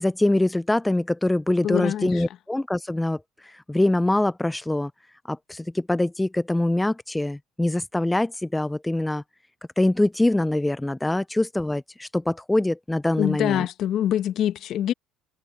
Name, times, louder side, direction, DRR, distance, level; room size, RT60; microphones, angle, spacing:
voice 1, 0.0-4.9 5.3-9.2 9.8-13.7, left 1 dB, 10° left, 0.4 m, -24 dB
voice 2, 1.6-2.2 13.2-14.9, left 11 dB, 55° left, 1.0 m, -24 dB
supercardioid pair, 100°, 0 cm